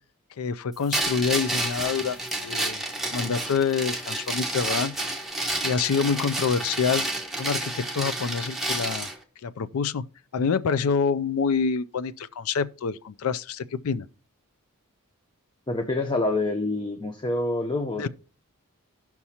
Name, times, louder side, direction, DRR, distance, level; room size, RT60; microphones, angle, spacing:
voice 1, 0.4-4.9 5.6-7.1 7.4-9.1 9.4-10.1 10.3-14.1 18.0-18.1, left 6 dB, 75° left, 0.4 m, -27 dB
sound 1, 0.9-9.2, right 1 dB, ahead, 1.2 m, -30 dB
voice 2, 15.7-18.1, left 2 dB, 20° left, 0.6 m, -26 dB
16.5 x 5.9 x 2.8 m
head